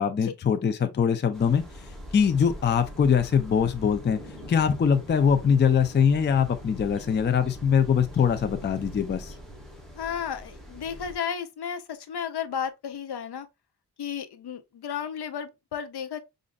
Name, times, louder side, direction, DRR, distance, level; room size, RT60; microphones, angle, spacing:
voice 1, 0.0-1.6 2.1-4.2 4.5-9.3, left 7 dB, 30° left, 0.3 m, -22 dB
sound 1, 1.3-11.2, equal, ahead, 0.9 m, -42 dB
voice 2, 10.0-13.5 14.0-16.2, left 8 dB, 70° left, 0.6 m, -33 dB
5.0 x 2.5 x 2.3 m
wide cardioid pair, 135°, 41 cm